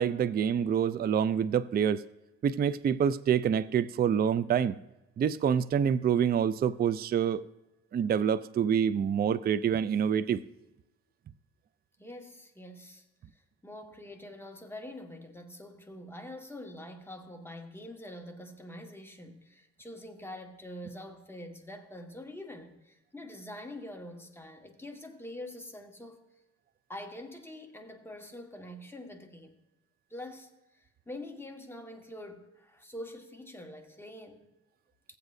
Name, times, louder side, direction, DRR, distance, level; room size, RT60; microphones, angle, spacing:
voice 1, 0.0-2.0 2.4-4.8 5.2-7.4 7.9-10.4, right 8 dB, 30° right, 0.4 m, -27 dB
voice 2, 12.0-13.0 13.3-26.2 26.9-29.6 30.1-34.4, left 1 dB, 10° left, 1.5 m, -45 dB
16.5 x 8.1 x 2.6 m
cardioid pair, 90°, 30 cm